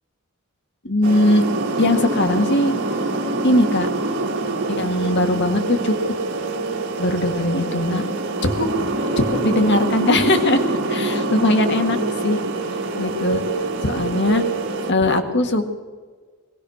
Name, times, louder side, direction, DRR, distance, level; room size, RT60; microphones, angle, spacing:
voice 1, 0.8-1.4 1.8-2.7 3.4-3.9 4.7-6.0 7.0-8.0 8.4-8.7 9.2-10.6 10.9-12.0 12.2-12.4 13.0-13.4 13.8-14.4 14.9-15.7, left 1 dB, 55° left, 7 dB, 1.9 m, -19 dB
sound 1, 1.0-14.9, right 2 dB, 60° right, 1.9 m, -25 dB
22.0 x 18.5 x 6.6 m, 1.4 s
head